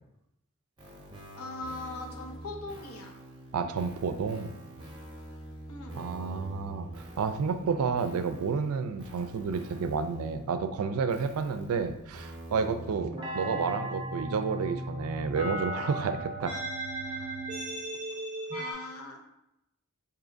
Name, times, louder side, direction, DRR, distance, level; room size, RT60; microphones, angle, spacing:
sound 1, 0.8-18.7, right 1 dB, 20° right, 0.7 m, -40 dB
voice 1, 1.4-3.1 5.7-6.0 13.4-13.7 18.5-19.2, left 2 dB, 90° left, 2 dB, 0.7 m, -40 dB
voice 2, 3.5-4.5 5.9-6.9 7.2-16.6, right 5 dB, 85° right, 9 dB, 0.4 m, -30 dB
4.9 x 2.7 x 2.5 m, 0.85 s
head